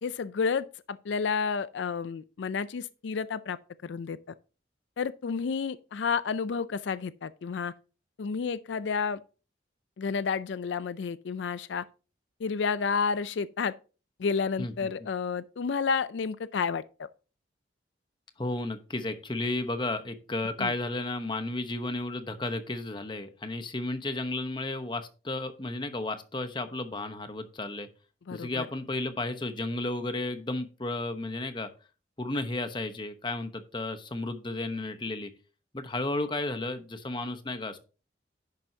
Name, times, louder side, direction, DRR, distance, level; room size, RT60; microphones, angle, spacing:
voice 1, 0.0-4.2 5.0-7.7 8.2-9.2 10.0-11.8 12.4-13.7 14.2-17.1 20.6-20.7 28.3-28.7, left 5 dB, 75° left, 0.4 m, -31 dB
voice 2, 14.6-14.9 18.4-27.9 28.3-31.7 32.2-35.3 35.7-37.8, left 2 dB, 25° left, 1.0 m, -33 dB
10.5 x 7.6 x 2.8 m
head